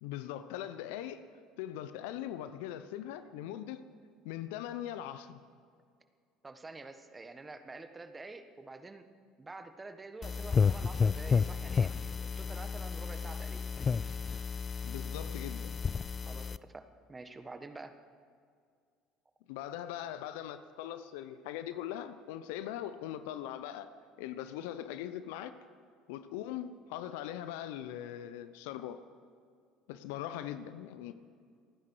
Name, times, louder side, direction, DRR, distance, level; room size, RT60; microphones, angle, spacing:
voice 1, 0.0-1.2 1.6-3.8 4.2-5.4 14.8-15.8 19.5-23.9 24.2-25.6 26.1-29.0 29.9-31.1, left 11 dB, 70° left, 12 dB, 0.8 m, -41 dB
voice 2, 6.4-9.1 9.4-13.6 16.3-18.0, right 3 dB, 20° right, 8 dB, 1.4 m, -48 dB
sound 1, 10.2-16.6, left 5 dB, 30° left, 0.4 m, -32 dB
28.0 x 9.8 x 4.8 m, 2.2 s
hypercardioid pair, 65°, 0 cm